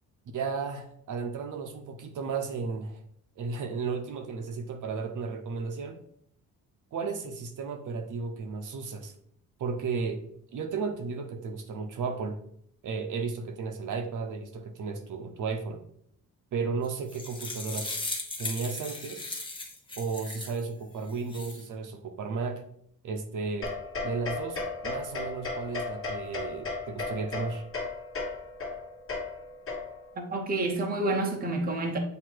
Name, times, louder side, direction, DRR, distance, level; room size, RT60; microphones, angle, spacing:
voice 1, 0.3-3.0 3.4-6.0 6.9-9.1 9.6-10.2 10.5-12.4 12.8-15.8 16.5-17.9 18.4-19.2 20.0-22.6 23.0-23.7 24.0-27.6, right 4 dB, 55° right, 0.8 m, -34 dB
sound 1, 16.8-20.6 21.1-21.6, left 2 dB, 15° left, 1.0 m, -37 dB
sound 2, 23.6-30.2, left 3 dB, 35° left, 1.3 m, -35 dB
voice 2, 30.2-32.0, right 2 dB, 25° right, 0.7 m, -29 dB
7.9 x 2.8 x 4.6 m
cardioid pair, 150°, 36 cm